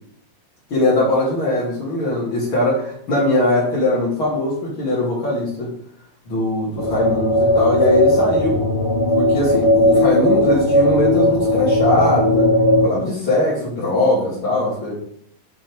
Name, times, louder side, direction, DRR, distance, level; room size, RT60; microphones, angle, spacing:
voice 1, 0.7-5.7 6.3-8.6 9.2-12.5 12.8-14.9, left 2 dB, 75° left, -8 dB, 3.6 m, -20 dB
sound 1, 6.8-12.9, left 1 dB, 50° left, 0.3 m, -17 dB
7.5 x 5.8 x 7.3 m, 0.65 s
omnidirectional pair, 2.3 m